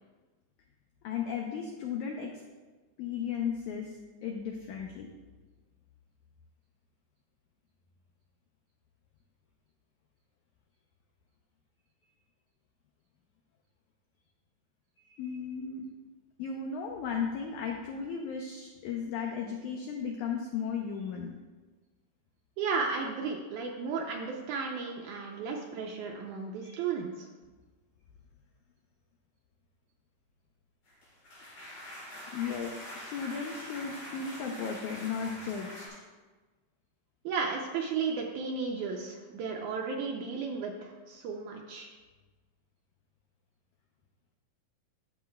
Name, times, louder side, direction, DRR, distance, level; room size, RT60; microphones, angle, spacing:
voice 1, 1.0-2.3 3.0-4.0 4.2-5.1 15.0-15.8 16.4-21.3 26.6-26.8 32.3-36.0, left 6 dB, 85° left, 1 dB, 1.7 m, -35 dB
voice 2, 22.6-27.3 37.3-41.9, right 5 dB, 85° right, 0 dB, 1.7 m, -34 dB
sound 1, 30.9-35.9, equal, 45° left, 3.4 m, -44 dB
12.0 x 6.9 x 2.2 m, 1.3 s
omnidirectional pair, 4.2 m